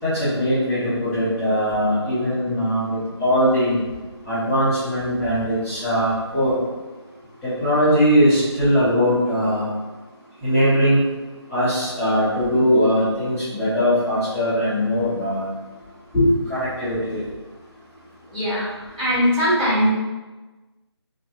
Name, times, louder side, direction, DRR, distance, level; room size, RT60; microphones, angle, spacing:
voice 1, 0.0-3.8 4.2-6.6 7.4-9.7 10.4-11.0 11.5-15.5 16.1-17.3, equal, ahead, -24 dB, 0.8 m, -20 dB
voice 2, 1.7-2.2 2.4-2.9 5.3-5.4 18.3-18.7 19.0-19.9, equal, 15° right, -12 dB, 1.1 m, -23 dB
3.2 x 2.3 x 2.8 m, 1.2 s
figure-of-eight pair, 160°, 14 cm